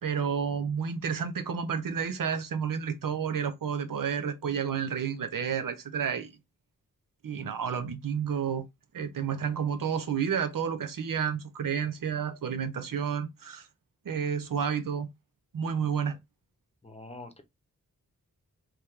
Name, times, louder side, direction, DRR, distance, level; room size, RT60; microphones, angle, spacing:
voice 1, 0.0-6.3 7.2-8.7 8.9-13.7 14.0-15.1 15.5-16.2, right 7 dB, 85° right, 0.8 m, -30 dB
voice 2, 16.8-17.4, left 2 dB, 20° left, 0.9 m, -44 dB
3.7 x 3.0 x 3.1 m
wide cardioid pair, 100°, 32 cm